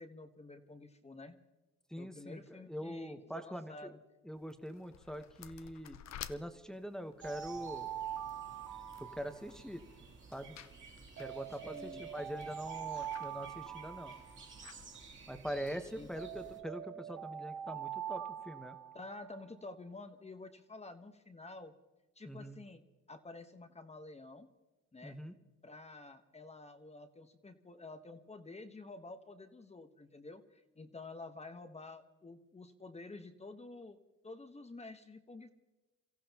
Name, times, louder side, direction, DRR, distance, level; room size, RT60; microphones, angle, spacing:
voice 1, 0.0-1.4 2.0-4.0 11.6-12.1 16.0-16.1 18.9-21.7 22.1-22.8 23.1-24.5 24.9-25.2 25.6-34.0 34.2-35.5, left 2 dB, 20° left, 7 dB, 1.3 m, -50 dB
voice 2, 1.9-3.9 4.2-6.0 6.3-7.9 9.0-9.8 10.3-10.6 11.2-14.1 15.3-18.8 22.3-22.6 25.0-25.3, equal, ahead, 6 dB, 1.2 m, -43 dB
sound 1, 4.4-16.1, left 10 dB, 60° left, 0.7 m, -56 dB
sound 2, 7.2-16.6, right 3 dB, 40° right, 2.7 m, -55 dB
Alarm, 7.2-9.8 11.2-14.8 16.2-19.4, right 10 dB, 80° right, 1.9 m, -44 dB
29.0 x 15.0 x 3.0 m, 1.1 s
cardioid pair, 90°, 30 cm